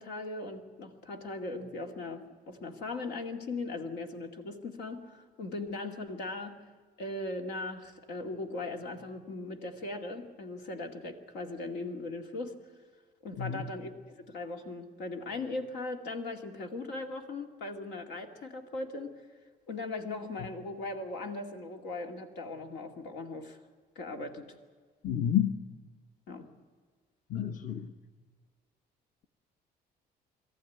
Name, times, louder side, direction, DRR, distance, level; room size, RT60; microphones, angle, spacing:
voice 1, 0.0-6.6 7.0-12.6 13.2-19.2 19.7-23.6 24.0-24.5 26.3-26.5, left 2 dB, 85° left, 2.4 m, -39 dB
voice 2, 25.0-25.6 27.3-27.9, left 10 dB, 50° left, 1.1 m, -30 dB
22.5 x 14.5 x 9.4 m
cardioid pair, 110°, 17 cm